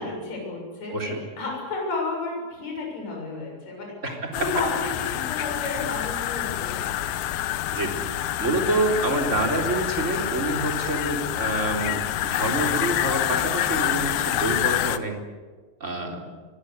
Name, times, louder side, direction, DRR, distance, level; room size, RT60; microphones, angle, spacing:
voice 1, 0.0-6.7, left 3 dB, 45° left, 0 dB, 8.0 m, -32 dB
voice 2, 4.0-4.3 7.7-8.0 8.4-15.2 15.8-16.2, right 2 dB, 20° right, 2 dB, 3.9 m, -27 dB
sound 1, 4.3-15.0, left 13 dB, 85° left, 2.9 m, -27 dB
25.5 x 23.0 x 8.2 m, 1.4 s
omnidirectional pair, 4.3 m